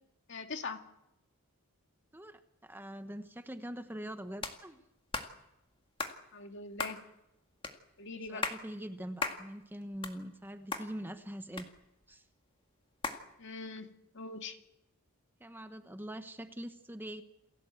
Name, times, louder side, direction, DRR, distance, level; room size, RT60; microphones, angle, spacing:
voice 1, 0.3-0.8 6.3-7.0 8.0-8.5 13.4-14.6, left 4 dB, 55° left, 6 dB, 2.0 m, -42 dB
voice 2, 2.1-4.8 8.3-11.7 12.1-12.2 15.4-17.2, equal, 10° right, 8 dB, 1.1 m, -43 dB
sound 1, 4.4-4.6 5.1-5.3 6.0-6.2 6.8-7.0 7.6-7.8 8.3-8.6 9.2-9.4 9.8-10.5 10.7-10.9 11.6-12.1 13.0-13.2, left 3 dB, 25° left, 2.0 m, -36 dB
28.5 x 16.5 x 8.0 m, 0.91 s
head